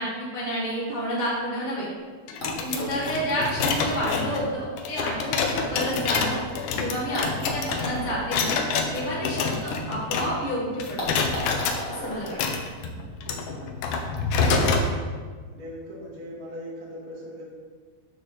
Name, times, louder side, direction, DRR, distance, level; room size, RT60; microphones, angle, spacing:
voice 1, 0.0-1.9 2.6-6.4 6.7-8.6 8.9-11.0 11.9-12.4 14.4-14.8, equal, 20° left, -7 dB, 1.2 m, -29 dB
sound 1, 2.3-10.5 10.8-11.8 12.3-14.9, left 4 dB, 80° left, 1.9 m, -27 dB
sound 2, 2.4-6.5 7.1-10.1 10.4-10.5 11.0-13.4 14.3-14.4, left 1 dB, 55° left, 0.8 m, -38 dB
voice 2, 2.7-3.1 5.3-5.6 11.9-12.3 13.3-13.7 14.6-15.0 15.5-17.4, right 1 dB, 45° right, -7 dB, 3.2 m, -40 dB
12.5 x 5.2 x 4.0 m, 1.5 s
omnidirectional pair, 4.5 m